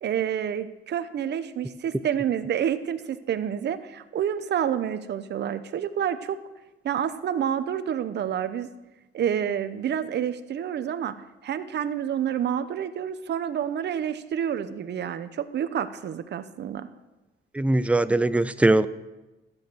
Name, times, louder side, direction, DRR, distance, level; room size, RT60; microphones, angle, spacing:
voice 1, 0.0-6.4 6.8-8.7 9.1-11.2 11.4-16.9, right 9 dB, 60° right, 11 dB, 0.9 m, -28 dB
voice 2, 17.5-18.9, right 2 dB, 5° right, 13 dB, 0.5 m, -21 dB
13.0 x 8.8 x 6.2 m, 1.1 s
cardioid pair, 90°, 20 cm